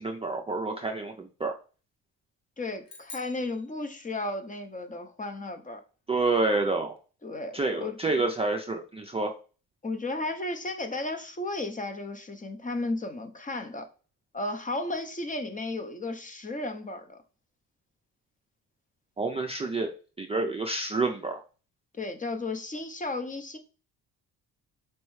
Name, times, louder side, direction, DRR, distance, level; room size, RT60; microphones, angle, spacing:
voice 1, 0.0-1.5 6.1-6.9 7.5-9.3 19.2-19.9 20.2-21.4, right 3 dB, 15° right, 0.4 m, -28 dB
voice 2, 2.6-5.8 7.2-8.0 9.8-13.9 14.3-17.2 21.9-23.6, left 2 dB, 20° left, 0.7 m, -34 dB
sound 1, 2.9-4.5, left 3 dB, 60° left, 1.4 m, -49 dB
4.5 x 3.0 x 3.1 m
cardioid pair, 80°, 38 cm